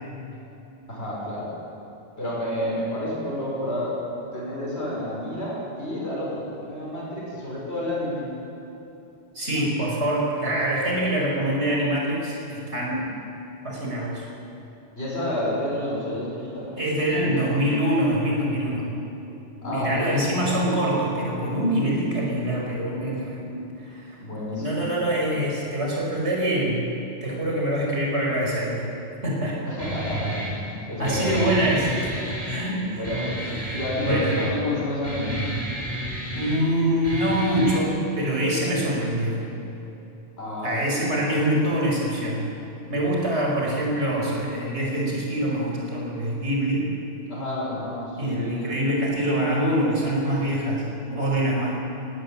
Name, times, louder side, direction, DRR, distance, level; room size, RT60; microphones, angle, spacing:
voice 1, 0.9-1.5 2.2-4.0 4.3-8.3 15.0-16.7 17.1-17.4 19.6-20.2 24.2-24.9 29.6-31.4 32.8-35.4 40.4-41.1 47.3-48.7, left 1 dB, 65° left, -6 dB, 6.8 m, -30 dB
voice 2, 9.3-13.0 13.6-14.3 16.8-18.9 19.6-24.2 24.5-26.9 27.2-28.9 29.2-29.6 31.0-33.0 33.4-34.4 36.3-39.4 40.6-42.5 42.9-46.8 48.2-51.7, right 1 dB, 70° right, -3 dB, 5.7 m, -25 dB
Guitar, 29.8-37.8, right 1 dB, 30° right, 4.0 m, -31 dB
19.0 x 17.5 x 8.8 m, 3.0 s
omnidirectional pair, 1.2 m